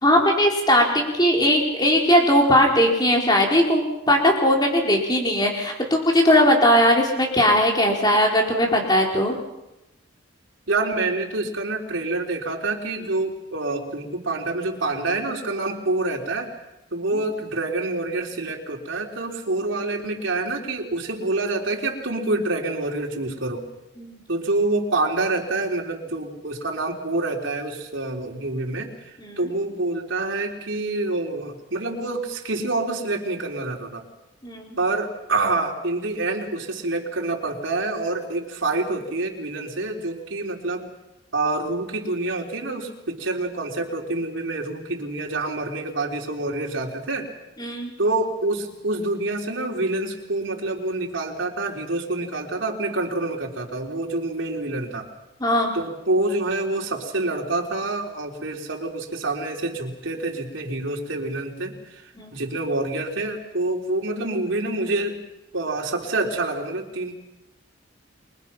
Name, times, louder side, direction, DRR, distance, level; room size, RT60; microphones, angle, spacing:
voice 1, 0.0-9.3 24.0-24.2 29.2-29.4 34.4-34.8 47.6-47.9 55.4-55.7 62.2-62.4, equal, 20° left, 0 dB, 4.8 m, -19 dB
voice 2, 10.7-16.5 16.9-23.7 24.3-34.0 34.8-40.9 41.3-47.3 48.0-55.1 55.7-65.2 65.5-67.2, right 2 dB, 85° right, 1 dB, 3.9 m, -27 dB
29.5 x 23.5 x 6.0 m, 0.95 s
head